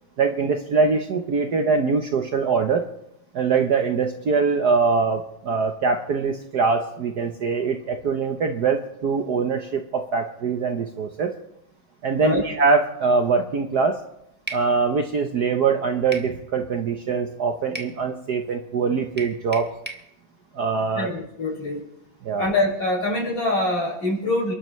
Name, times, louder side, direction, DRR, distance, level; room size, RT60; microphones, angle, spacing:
voice 1, 0.2-2.8 3.3-11.3 12.0-14.0 14.5-19.7 20.5-21.1 22.2-22.5, right 4 dB, 55° right, 5 dB, 1.3 m, -23 dB
sound 1, 14.5-14.7 16.1-16.3 17.7-18.0 19.2-20.1, right 1 dB, 5° right, 0.9 m, -35 dB
voice 2, 21.0-21.8 22.4-24.5, left 2 dB, 55° left, -4 dB, 7.2 m, -24 dB
28.5 x 12.5 x 3.2 m, 0.80 s
omnidirectional pair, 2.4 m